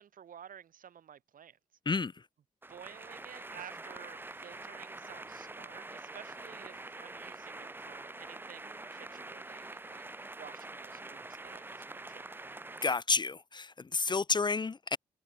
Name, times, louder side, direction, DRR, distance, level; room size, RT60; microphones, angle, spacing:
voice 1, 0.0-1.6 2.7-12.3, right 8 dB, 65° right, 2.9 m, -52 dB
sound 1, 2.6-13.0, right 2 dB, 15° right, 0.5 m, -45 dB
voice 2, 12.8-15.0, left 4 dB, 30° left, 0.6 m, -30 dB
hypercardioid pair, 45°, 15 cm